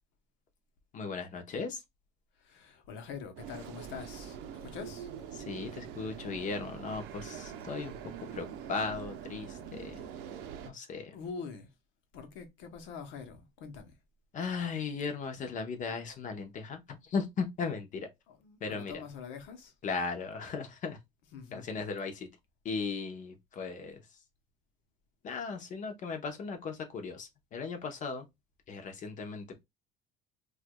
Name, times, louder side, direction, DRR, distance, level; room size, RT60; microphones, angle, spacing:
voice 1, 0.9-1.8 5.3-7.9 8.2-10.0 10.7-11.1 14.3-18.1 18.6-19.0 19.8-21.0 21.5-22.3 22.6-24.0 25.2-28.3 28.7-29.6, left 5 dB, 40° left, 0.8 m, -37 dB
voice 2, 2.4-5.1 11.1-11.7 12.1-13.9 18.3-19.7 21.3-21.8, left 6 dB, 75° left, 0.9 m, -45 dB
sound 1, 3.4-10.7, right 8 dB, 90° right, 0.6 m, -44 dB
4.5 x 2.4 x 2.2 m
cardioid pair, 155°, 20 cm